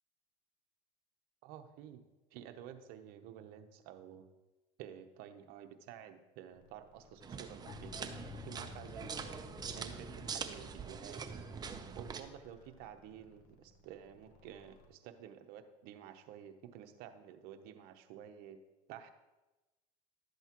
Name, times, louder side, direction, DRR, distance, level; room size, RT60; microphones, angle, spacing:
voice 1, 1.4-2.0 2.3-4.3 4.8-9.4 9.7-11.2 11.9-18.6 18.9-19.1, right 10 dB, 65° right, 7 dB, 0.9 m, -51 dB
sound 1, 6.5-14.9, left 3 dB, 65° left, 1.4 m, -65 dB
sound 2, 7.2-12.2, right 6 dB, 25° right, 0.7 m, -44 dB
sound 3, 7.7-13.4, left 8 dB, 35° left, 0.5 m, -54 dB
12.0 x 8.0 x 3.0 m, 1.1 s
supercardioid pair, 110°, 17 cm